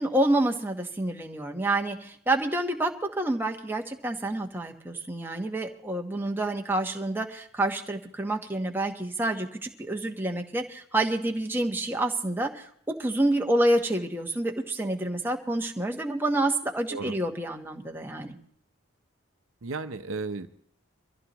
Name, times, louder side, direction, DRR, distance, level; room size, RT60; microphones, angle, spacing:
voice 1, 0.0-18.4, right 1 dB, 10° right, 2 dB, 1.2 m, -28 dB
voice 2, 19.6-20.5, right 3 dB, 80° right, 8 dB, 0.8 m, -34 dB
23.5 x 15.0 x 3.0 m, 0.65 s
head